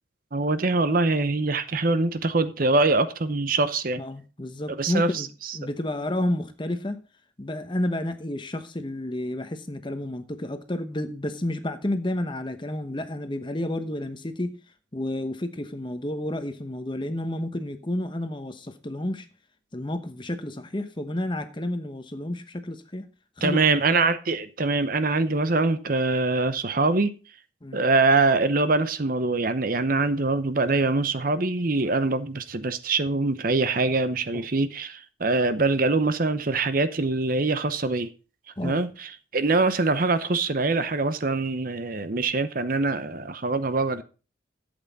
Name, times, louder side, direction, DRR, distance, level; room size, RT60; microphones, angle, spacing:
voice 1, 0.3-4.0 4.7-5.6 23.4-27.1 27.7-38.1 38.6-44.0, right 3 dB, 45° right, 0.8 m, -24 dB
voice 2, 4.0-5.3 5.5-7.0 7.4-14.5 14.9-19.3 19.7-23.1 23.4-23.6 27.6-27.8 34.3-34.4 38.6-38.8, left 1 dB, 25° left, 1.0 m, -30 dB
12.0 x 8.1 x 4.0 m
head